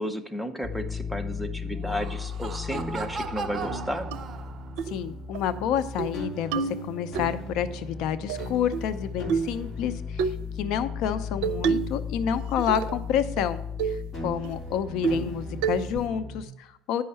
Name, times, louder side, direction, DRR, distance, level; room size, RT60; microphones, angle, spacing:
voice 1, 0.0-4.1, equal, ahead, 6 dB, 0.8 m, -33 dB
sound 1, 0.6-16.4, left 4 dB, 30° left, 2.8 m, -36 dB
Laughter, 1.7-4.9, right 4 dB, 35° right, 0.7 m, -37 dB
sound 2, 4.1-4.2 4.8-5.0 5.3-5.4 5.8-6.1 6.5-7.3 8.3-8.9 9.3-9.6 10.2-10.4 11.4-12.0 12.3-13.0 13.4-13.5 13.8-14.0 14.4-14.5 15.0-15.3 15.6-16.1, right 6 dB, 90° right, 0.5 m, -28 dB
voice 2, 4.9-10.3 10.6-17.0, left 9 dB, 70° left, 12 dB, 0.6 m, -29 dB
9.7 x 5.6 x 5.6 m, 0.83 s
cardioid pair, 140°, 0 cm